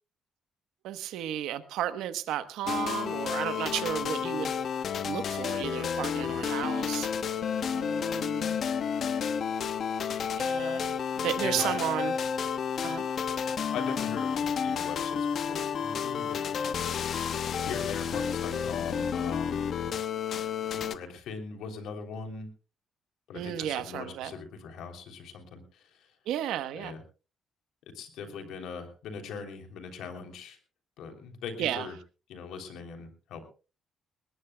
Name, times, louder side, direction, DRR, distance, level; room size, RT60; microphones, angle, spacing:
voice 1, 0.8-4.5 5.0-7.1 7.7-8.6 10.4-12.2 12.8-13.0 23.3-24.3 26.3-26.9 31.6-31.9, right 11 dB, 90° right, 11 dB, 1.0 m, -33 dB
sound 1, 2.7-21.0, left 7 dB, 60° left, 1.0 m, -31 dB
voice 2, 11.4-12.0 13.7-19.6 20.7-22.5 23.3-26.1 26.7-27.0 27.9-30.6 31.0-31.9 32.3-33.4, left 5 dB, 85° left, 6 dB, 3.1 m, -41 dB
21.5 x 19.0 x 2.3 m, 0.34 s
cardioid pair, 90°, 0 cm